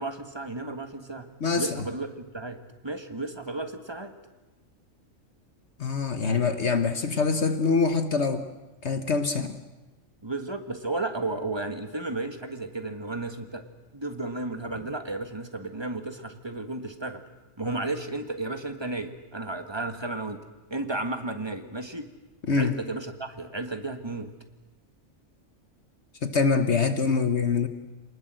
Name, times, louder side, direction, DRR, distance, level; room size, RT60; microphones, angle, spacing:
voice 1, 0.0-4.1 10.2-13.6 13.9-17.2 17.6-20.4 20.7-22.1 22.5-24.3, right 2 dB, 20° right, 6 dB, 1.6 m, -33 dB
voice 2, 5.8-8.5 8.8-9.6 22.5-22.7 26.2-27.7, left 4 dB, 60° left, 8 dB, 1.4 m, -24 dB
27.0 x 20.0 x 7.7 m, 1.1 s
omnidirectional pair, 1.4 m